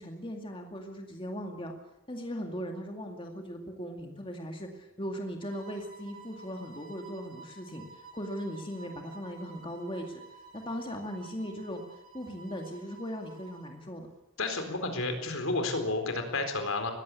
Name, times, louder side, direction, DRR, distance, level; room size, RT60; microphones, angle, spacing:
voice 1, 0.0-1.7 2.1-10.2 10.5-11.8 12.1-14.1, equal, 25° left, 3 dB, 2.2 m, -38 dB
sound 1, 5.4-13.8, right 5 dB, 80° right, 7.7 m, -52 dB
voice 2, 14.4-16.9, left 2 dB, 70° left, 6 dB, 4.2 m, -31 dB
20.5 x 16.0 x 8.4 m, 0.96 s
head